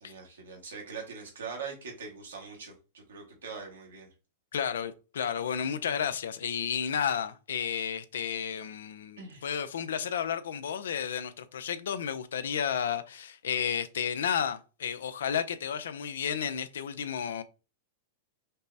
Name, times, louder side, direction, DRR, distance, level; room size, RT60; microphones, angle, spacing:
voice 1, 0.0-4.1 9.2-9.4, right 5 dB, 85° right, 1.4 m, -42 dB
voice 2, 4.5-17.4, left 8 dB, 80° left, 0.4 m, -32 dB
5.3 x 2.0 x 2.7 m
hypercardioid pair, 115°, 0 cm